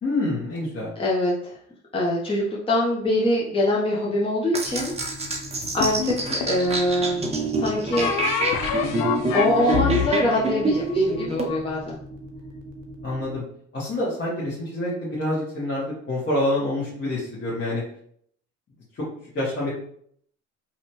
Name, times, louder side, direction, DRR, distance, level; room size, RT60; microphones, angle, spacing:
voice 1, 0.0-1.0 13.0-13.4 13.7-17.8 18.9-19.0 19.3-19.7, left 1 dB, 30° left, -8 dB, 1.1 m, -27 dB
voice 2, 1.0-1.6 1.9-4.9 5.7-8.1 9.3-12.0, left 1 dB, 15° left, -5 dB, 0.8 m, -24 dB
sound 1, 4.5-11.5, right 2 dB, 15° right, 0.7 m, -26 dB
sound 2, 4.7-13.4, right 1 dB, 90° right, 0.6 m, -41 dB
sound 3, 5.8-6.6 7.9-11.6, left 8 dB, 60° left, 0.5 m, -27 dB
2.7 x 2.2 x 2.9 m, 0.65 s
hypercardioid pair, 60°, 37 cm